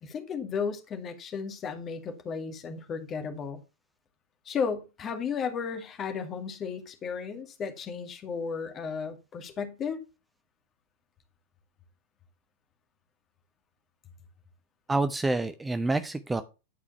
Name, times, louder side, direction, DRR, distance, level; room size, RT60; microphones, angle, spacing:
voice 1, 0.0-3.6 4.5-10.0, left 6 dB, 25° left, 2.0 m, -34 dB
voice 2, 14.9-16.4, right 2 dB, 10° right, 0.7 m, -27 dB
11.5 x 4.9 x 5.6 m
figure-of-eight pair, 90°, 0 cm